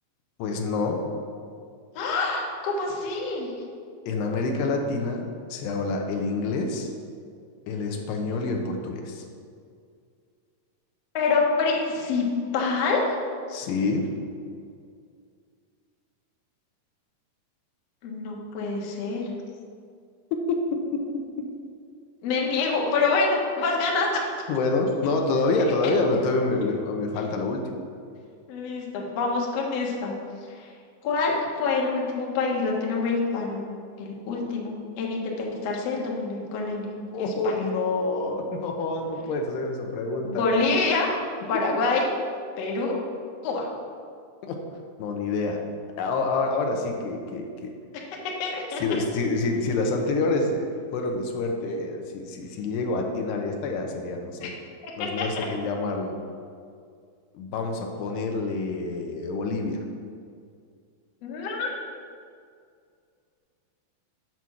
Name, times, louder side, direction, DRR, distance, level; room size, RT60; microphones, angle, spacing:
voice 1, 0.4-1.0 4.1-6.9 7.7-9.2 13.5-14.1 20.5-21.5 24.5-27.8 37.1-40.6 41.5-41.6 44.4-44.6 45.0-45.6 46.0-47.8 48.8-54.5 55.0-56.2 57.3-59.8, left 3 dB, 80° left, 3 dB, 2.9 m, -27 dB
voice 2, 1.9-3.5 11.1-12.2 12.5-13.0 18.0-19.2 22.2-24.4 28.5-30.1 30.6-30.7 31.0-31.3 31.6-33.6 34.0-36.9 37.2-37.6 40.2-41.1 41.5-42.1 42.6-42.9 43.4-43.7 48.4-48.8 54.4-54.5 54.8-54.9 55.2-55.4 61.2-61.7, left 4 dB, 65° left, -1 dB, 1.6 m, -26 dB
7.8 x 6.1 x 7.0 m, 2.3 s
omnidirectional pair, 4.8 m